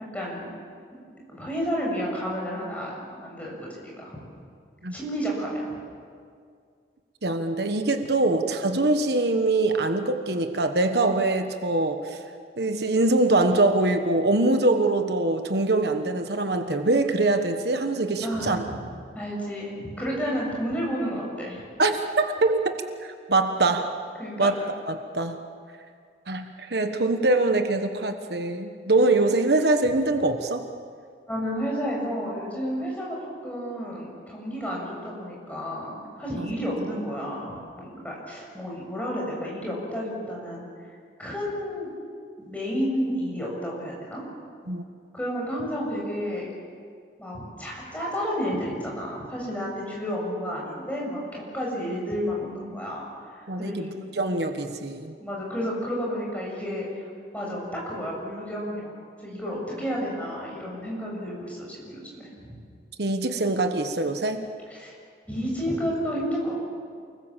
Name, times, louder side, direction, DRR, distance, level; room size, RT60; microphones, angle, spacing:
voice 1, 0.1-0.5 1.2-3.7 4.0-4.2 4.9-5.6 18.2-18.9 19.1-21.6 24.2-24.5 31.3-33.2 33.4-40.7 41.2-41.9 42.4-44.2 45.1-46.5 47.2-53.0 53.4-53.9 55.2-57.1 57.3-58.9 59.2-62.6 64.7-64.9 65.3-66.5, equal, 10° left, -3 dB, 7.4 m, -31 dB
voice 2, 7.2-12.2 12.6-18.6 21.8-22.8 23.0-23.9 24.4-24.5 24.9-25.4 26.3-30.7 36.4-36.5 44.7-44.8 53.5-55.1 63.0-64.4, right 2 dB, 70° right, 6 dB, 1.3 m, -23 dB
29.0 x 21.0 x 7.5 m, 2.2 s
head